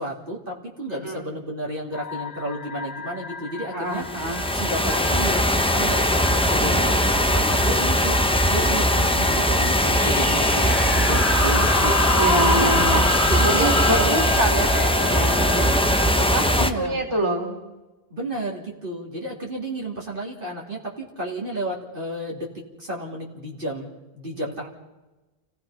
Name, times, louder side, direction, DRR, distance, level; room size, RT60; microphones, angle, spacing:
voice 1, 0.0-4.0 4.5-8.2 8.4-12.7 13.2-14.2 16.6-17.0 18.1-22.5 22.8-23.9 24.1-24.7, right 1 dB, 60° right, -3 dB, 3.2 m, -31 dB
voice 2, 0.9-1.3 3.7-4.4 12.1-13.1 13.4-15.8 16.2-17.6, right 1 dB, 30° right, 1 dB, 3.4 m, -26 dB
sound 1, 1.9-16.1, left 4 dB, 85° left, 1.4 m, -34 dB
sound 2, 4.0-16.7, equal, 5° left, 0.8 m, -20 dB
sound 3, 9.8-17.0, left 1 dB, 40° left, 1.3 m, -26 dB
29.5 x 17.0 x 5.7 m, 1.1 s
omnidirectional pair, 1.0 m